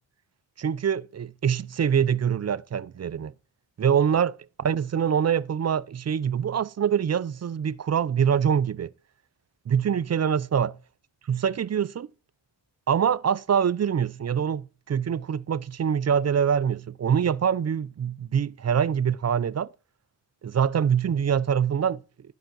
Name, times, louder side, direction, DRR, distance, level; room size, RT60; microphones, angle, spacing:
voice 1, 0.6-3.3 3.8-8.9 9.7-10.7 11.3-12.1 12.9-19.7 20.4-22.0, right 8 dB, 40° right, 0.4 m, -24 dB
11.5 x 5.7 x 3.8 m
wide cardioid pair, 85°, 44 cm